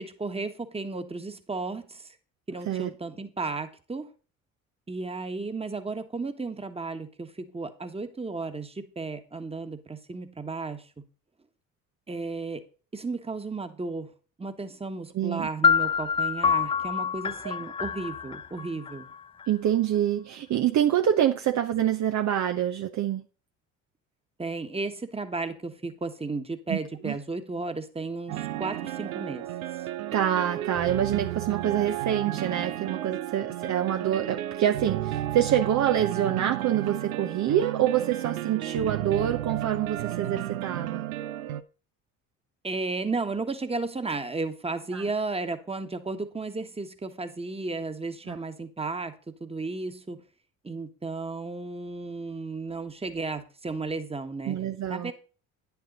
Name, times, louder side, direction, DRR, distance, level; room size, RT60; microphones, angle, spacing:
voice 1, 0.0-2.1 2.5-4.1 4.9-10.9 12.1-12.6 12.9-14.1 14.4-19.1 24.4-29.5 42.6-49.1 49.4-50.2 50.6-54.6 54.9-55.1, right 3 dB, 15° right, 1.4 m, -34 dB
voice 2, 15.1-15.5 17.4-17.5 19.5-23.2 26.7-26.8 27.0-27.2 30.1-41.0 44.9-45.0 48.3-48.4 54.5-55.1, right 10 dB, 45° right, 0.8 m, -26 dB
sound 1, 15.6-19.5, left 6 dB, 15° left, 0.3 m, -26 dB
sound 2, 28.3-41.6, right 13 dB, 85° right, 0.6 m, -33 dB
10.0 x 7.0 x 3.9 m
hypercardioid pair, 55°, 41 cm